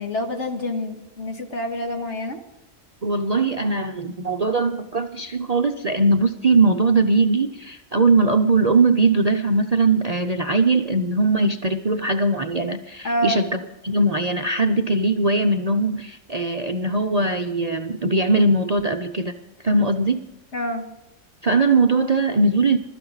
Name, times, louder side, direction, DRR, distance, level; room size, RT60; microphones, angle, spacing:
voice 1, 0.0-2.4 13.0-13.4 20.5-20.8, equal, 60° left, 3 dB, 2.2 m, -27 dB
voice 2, 3.0-19.3 19.6-20.3 21.4-22.8, right 3 dB, 40° right, 5 dB, 0.6 m, -20 dB
22.0 x 13.0 x 4.0 m, 0.96 s
omnidirectional pair, 1.4 m